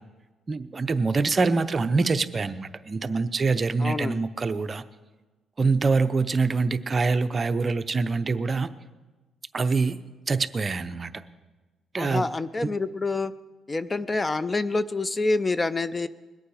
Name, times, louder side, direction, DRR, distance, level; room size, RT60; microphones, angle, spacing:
voice 1, 0.5-4.8 5.6-8.7 9.5-10.0 10.3-11.1 11.9-12.2 12.6-12.8, right 4 dB, 35° right, 11 dB, 0.7 m, -25 dB
voice 2, 3.8-4.2 12.0-13.3 13.7-16.1, left 3 dB, 25° left, 15 dB, 0.5 m, -27 dB
21.5 x 8.8 x 4.9 m, 1.2 s
cardioid pair, 90°, 0 cm